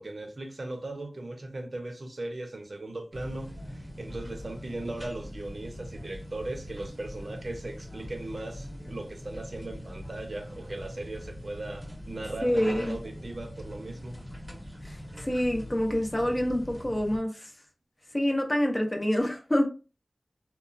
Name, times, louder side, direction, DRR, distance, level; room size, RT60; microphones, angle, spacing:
voice 1, 0.0-14.2, right 2 dB, 60° right, 0.6 m, -38 dB
sound 1, 3.1-17.2, equal, 5° right, 0.8 m, -42 dB
voice 2, 12.4-13.0 14.8-17.5 18.1-19.7, equal, 25° left, 0.5 m, -27 dB
2.9 x 2.0 x 2.5 m
wide cardioid pair, 50°, 0 cm